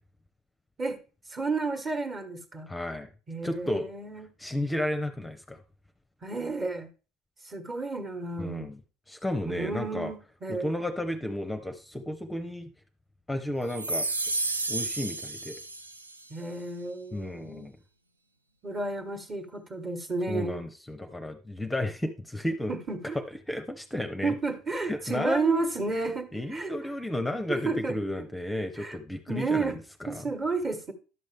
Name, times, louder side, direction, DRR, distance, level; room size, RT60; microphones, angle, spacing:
voice 1, 1.3-2.7 3.3-4.3 6.2-6.9 7.4-8.6 9.5-10.7 16.3-17.7 18.6-20.6 22.7-23.2 24.2-26.7 27.5-28.0 28.8-29.0 29.3-29.8 30.1-30.9, right 3 dB, 30° right, 1.4 m, -32 dB
voice 2, 2.7-3.1 3.4-3.9 4.4-5.6 8.4-8.8 9.1-10.1 10.5-12.7 13.3-14.1 14.7-15.6 17.1-17.8 20.3-22.7 23.5-24.3 24.9-25.7 26.3-30.2, left 1 dB, 10° left, 0.7 m, -32 dB
sound 1, 13.7-16.2, right 2 dB, 90° right, 0.4 m, -31 dB
11.0 x 6.4 x 3.4 m
figure-of-eight pair, 60°, 0 cm